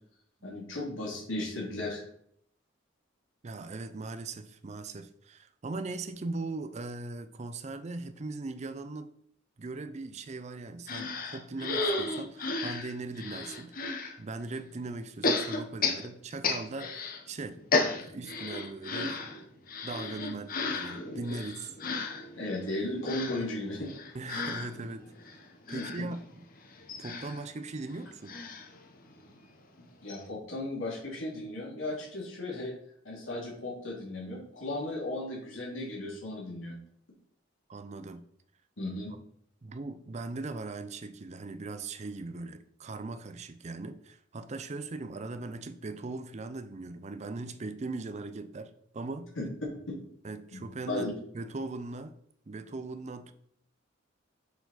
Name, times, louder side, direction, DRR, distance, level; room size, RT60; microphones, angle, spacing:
voice 1, 0.4-2.0 22.4-23.9 25.7-26.1 29.8-32.7 33.0-36.8 38.8-39.1 49.4-49.5 49.9-50.0 50.5-50.6 50.9-51.1, left 1 dB, 85° left, 2.5 m, -35 dB
voice 2, 3.4-9.1 9.6-13.9 14.2-17.6 18.0-19.2 19.8-21.5 24.1-25.0 25.7-26.4 27.0-28.4 37.7-38.2 39.6-49.3 50.2-52.2 52.5-53.3, right 3 dB, 35° right, 0.5 m, -39 dB
sound 1, 10.9-14.1 15.2-17.2 17.5-29.4 29.8-29.9 30.1-30.2, left 3 dB, 45° left, 1.0 m, -34 dB
6.7 x 4.6 x 4.0 m
head